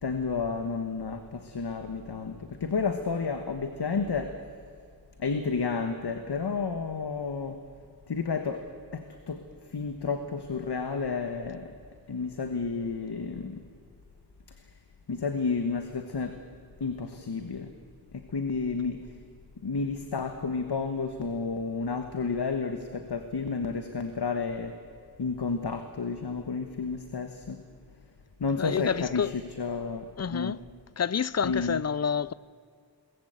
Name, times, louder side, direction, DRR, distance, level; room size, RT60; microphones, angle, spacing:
voice 1, 0.0-4.4 5.2-7.6 8.1-8.6 8.9-11.7 12.1-13.6 15.1-16.4 16.8-17.7 18.3-19.0 19.6-24.8 25.2-27.6 28.4-30.5 31.4-31.8, left 4 dB, 70° left, 1.4 m, -31 dB
voice 2, 28.6-29.3 30.2-30.6 31.0-32.3, left 7 dB, 40° left, 0.5 m, -28 dB
23.0 x 19.5 x 8.1 m
wide cardioid pair, 60°, 41 cm